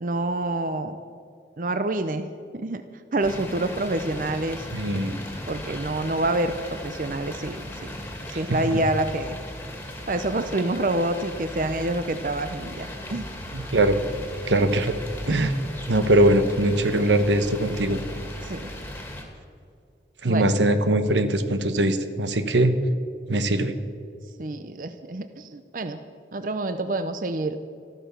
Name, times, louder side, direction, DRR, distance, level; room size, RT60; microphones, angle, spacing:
voice 1, 0.0-1.0 1.6-2.8 3.1-4.7 5.5-8.0 8.3-9.4 10.1-13.3 15.3-15.5 18.4-18.7 20.2-20.6 24.4-26.0 26.3-27.6, right 2 dB, 45° right, 9 dB, 0.6 m, -27 dB
sound 1, 3.2-19.2, left 1 dB, 10° left, 2.0 m, -37 dB
voice 2, 4.7-5.2 8.7-8.8 13.5-14.0 14.5-15.0 15.3-15.5 15.9-18.0 20.2-22.7 23.3-23.8, right 1 dB, 85° right, 10 dB, 1.1 m, -21 dB
13.5 x 13.5 x 6.9 m, 2.3 s
head